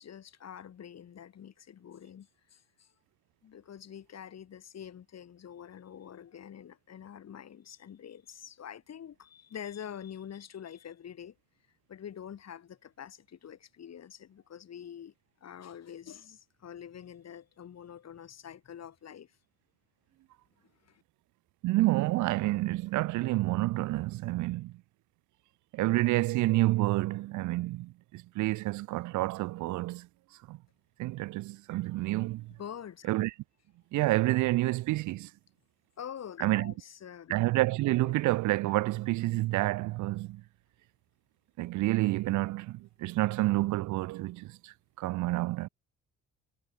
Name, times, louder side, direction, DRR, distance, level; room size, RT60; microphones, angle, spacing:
voice 1, 0.0-2.9 3.4-11.4 11.9-15.1 15.4-19.3 20.8-21.0 32.6-33.1 36.0-37.4 38.0-38.1, left 9 dB, 60° left, 6.5 m, -46 dB
voice 2, 21.6-24.7 25.7-30.1 30.5-30.6 31.0-32.5 33.1-33.3 33.9-35.3 36.4-36.7 37.3-40.4 41.6-45.7, right 18 dB, 75° right, 0.5 m, -29 dB
cardioid pair, 90°, 30 cm